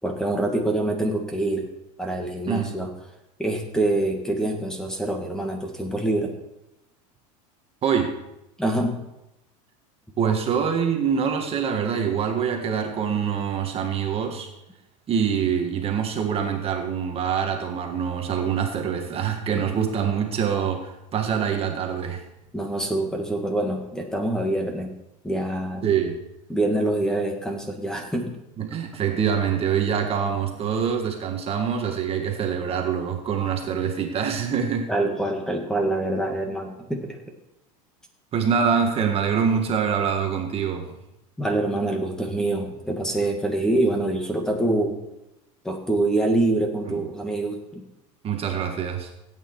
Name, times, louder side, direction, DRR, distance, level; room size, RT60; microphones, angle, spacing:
voice 1, 0.0-1.6 2.0-2.9 3.4-6.3 8.6-9.0 22.5-24.9 25.2-25.8 26.5-28.3 34.9-37.2 41.4-45.0 45.6-47.9, right 2 dB, 5° left, 3 dB, 2.1 m, -25 dB
voice 2, 7.8-8.1 10.2-14.5 15.1-22.2 25.8-26.2 28.6-34.9 38.3-40.9 46.9-47.0 48.2-49.1, right 7 dB, 35° right, 3 dB, 1.6 m, -25 dB
16.5 x 9.1 x 4.7 m, 0.90 s
supercardioid pair, 120°, 18 cm